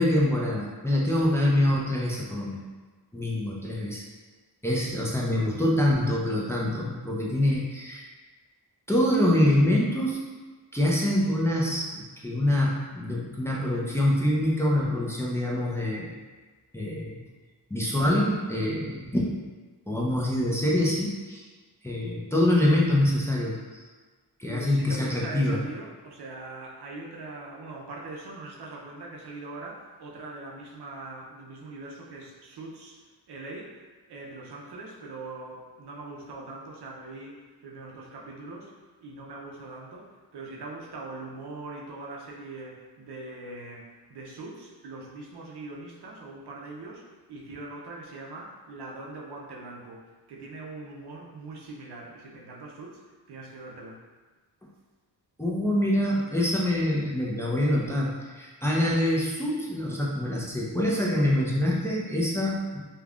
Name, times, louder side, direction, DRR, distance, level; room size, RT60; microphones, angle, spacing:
voice 1, 0.0-2.6 3.1-4.0 4.6-8.0 8.9-10.2 10.7-16.0 16.7-17.2 17.7-19.4 19.9-21.5 21.8-23.8 24.4-25.6 55.4-62.8, left 1 dB, 5° left, -5 dB, 0.5 m, -25 dB
voice 2, 24.5-33.8 34.1-38.7 39.0-40.1 40.3-53.0 53.3-54.0, right 2 dB, 70° right, -2 dB, 0.6 m, -42 dB
3.3 x 2.3 x 2.3 m, 1.3 s
cardioid pair, 55°, 42 cm